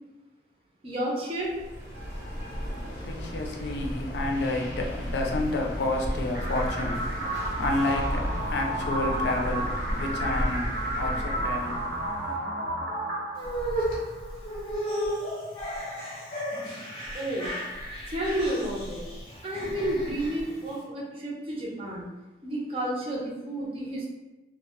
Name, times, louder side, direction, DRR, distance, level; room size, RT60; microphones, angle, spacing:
voice 1, 0.8-1.5 17.1-17.5 18.1-19.0 19.4-22.0 22.4-24.1, right 1 dB, 30° right, -4 dB, 0.5 m, -31 dB
sound 1, 1.4-12.2, equal, 65° right, 0.8 m, -34 dB
voice 2, 2.3-12.7, left 2 dB, 75° left, 1 dB, 0.4 m, -31 dB
sound 2, 6.3-14.3, right 1 dB, 80° right, 1.1 m, -32 dB
sound 3, 13.4-20.8, equal, 30° left, 0.6 m, -34 dB
2.1 x 2.0 x 2.9 m, 1.1 s
head